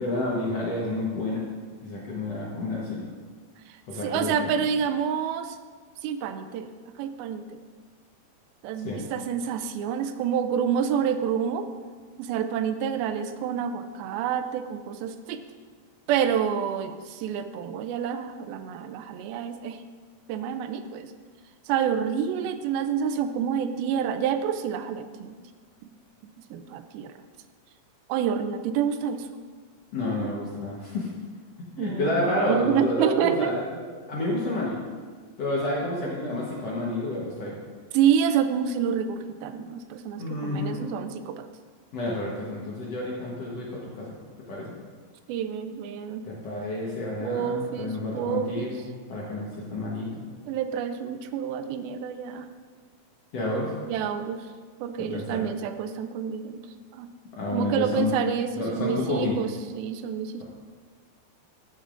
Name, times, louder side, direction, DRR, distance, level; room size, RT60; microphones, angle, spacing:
voice 1, 0.0-1.4 1.8-3.0 3.9-4.5 8.8-9.0 29.9-31.1 31.6-34.8 35.4-37.5 40.2-40.9 41.9-44.1 44.5-44.7 46.2-50.2 53.3-53.7 55.0-55.5 57.3-58.1 58.6-59.4, left 2 dB, 60° left, -5 dB, 1.7 m, -30 dB
voice 2, 4.0-5.6 6.0-6.7 7.0-7.6 8.6-11.7 12.2-15.4 16.1-19.8 20.3-21.1 21.7-25.3 26.2-27.1 28.1-29.3 31.8-33.6 37.9-41.4 45.3-46.2 47.2-48.7 50.5-52.5 53.9-54.4 54.8-56.6 56.9-57.1 57.5-60.4, right 8 dB, 85° right, 9 dB, 2.3 m, -28 dB
15.0 x 6.8 x 2.5 m, 1.5 s
omnidirectional pair, 4.3 m